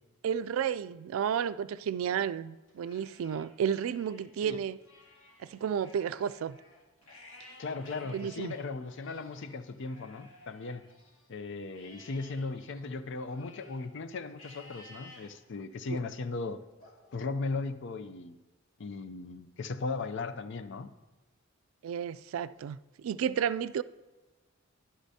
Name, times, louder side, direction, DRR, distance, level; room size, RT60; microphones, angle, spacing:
voice 1, 0.2-4.8 5.4-6.6 8.1-8.5 15.9-16.0 21.8-23.8, right 8 dB, 85° right, 0.3 m, -32 dB
Livestock farm animals working animals, 2.7-4.3 4.7-11.3 11.7-13.9 14.4-15.3 15.8-16.2 16.8-17.9, left 2 dB, 85° left, 1.9 m, -55 dB
voice 2, 7.6-10.9 11.3-16.6 17.1-18.4 18.8-20.9, left 3 dB, 65° left, 0.5 m, -37 dB
11.5 x 11.0 x 2.8 m
head